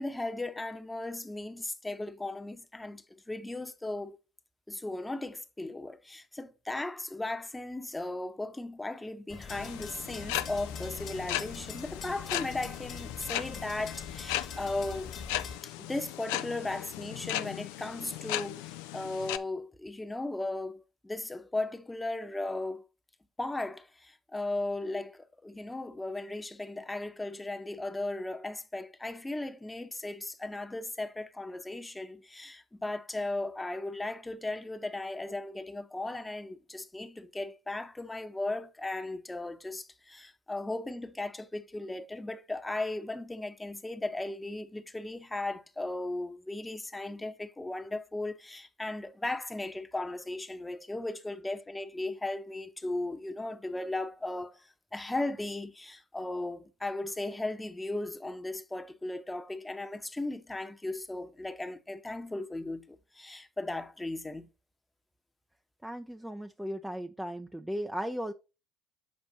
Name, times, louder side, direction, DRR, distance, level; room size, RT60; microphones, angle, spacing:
voice 1, 0.0-4.2 4.7-15.2 15.6-22.9 23.4-64.5, left 2 dB, 15° left, 1.0 m, -36 dB
sound 1, 9.3-15.6, left 5 dB, 40° left, 1.4 m, -44 dB
sound 2, 9.5-19.4, left 14 dB, 75° left, 0.4 m, -37 dB
voice 2, 65.8-68.3, equal, 5° right, 0.5 m, -36 dB
7.6 x 5.1 x 4.1 m
hypercardioid pair, 60°, 0 cm